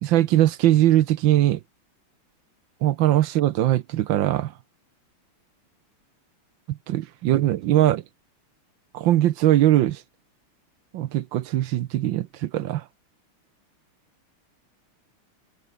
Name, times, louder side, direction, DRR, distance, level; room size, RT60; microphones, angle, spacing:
voice 1, 0.0-1.6 2.8-4.5 6.7-8.0 8.9-10.0 10.9-12.8, right 13 dB, 70° right, 1.4 m, -21 dB
omnidirectional pair, 2.4 m